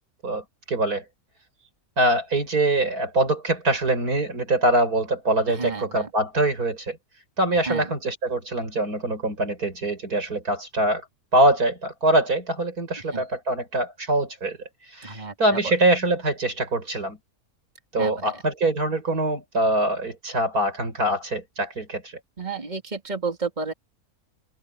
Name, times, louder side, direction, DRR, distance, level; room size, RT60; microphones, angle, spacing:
voice 1, 0.2-1.0 2.0-7.0 7.4-11.0 11.3-14.6 14.9-17.2 17.9-22.1, right 1 dB, 85° right, 6.4 m, -23 dB
voice 2, 5.5-6.1 7.7-7.9 13.1-13.2 15.0-15.3 15.6-15.7 18.0-18.3 22.4-23.7, right 4 dB, 30° right, 3.2 m, -31 dB
open air
omnidirectional pair, 1.6 m